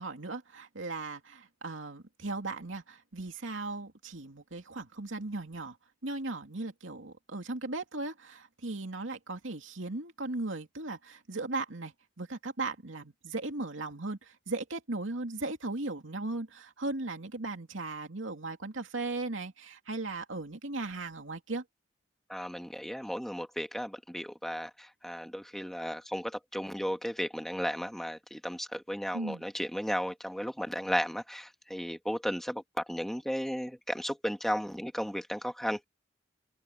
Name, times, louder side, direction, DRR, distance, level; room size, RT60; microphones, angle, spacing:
voice 1, 0.0-5.8 6.0-21.6 29.1-29.4, right 2 dB, 85° right, 2.7 m, -37 dB
voice 2, 22.3-24.7 25.0-35.8, equal, ahead, 1.9 m, -34 dB
head